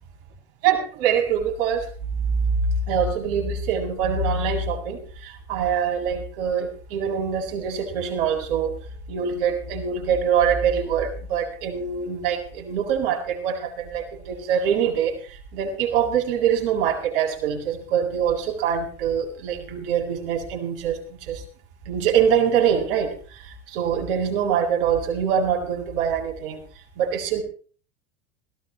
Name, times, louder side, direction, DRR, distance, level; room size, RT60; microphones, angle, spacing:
voice 1, 0.6-1.9 2.5-8.7 9.1-21.4 21.9-26.6 27.0-27.4, right 7 dB, 65° right, 2 dB, 7.8 m, -24 dB
20.5 x 19.0 x 3.2 m, 0.43 s
hypercardioid pair, 100°, 31 cm